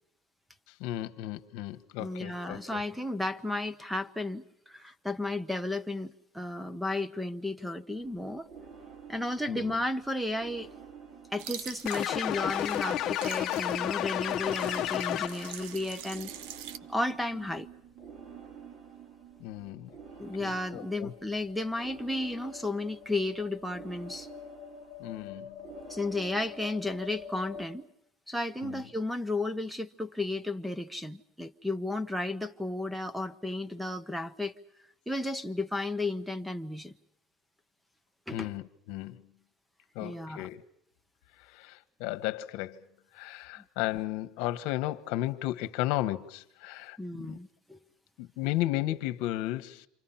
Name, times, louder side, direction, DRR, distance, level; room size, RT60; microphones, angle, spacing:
voice 1, 0.8-2.8 9.5-9.8 19.4-19.9 20.4-21.1 25.0-25.6 28.6-28.8 38.3-39.2 39.9-40.6 41.4-42.9 43.1-47.4 48.2-49.9, left 15 dB, 70° left, 1.3 m, -34 dB
voice 2, 2.0-8.5 9.1-10.7 11.3-16.3 16.9-17.7 20.2-24.3 25.9-27.9 28.3-34.5 35.1-36.9 38.3-38.5 40.0-40.5 47.0-47.8, left 2 dB, ahead, 1.0 m, -33 dB
sound 1, 8.0-27.7, right 1 dB, 45° right, 5.2 m, -48 dB
sound 2, 11.4-16.8, right 10 dB, 85° right, 1.1 m, -45 dB
sound 3, 11.9-15.6, left 12 dB, 45° left, 1.0 m, -31 dB
29.0 x 26.5 x 5.8 m
cardioid pair, 145°, 0 cm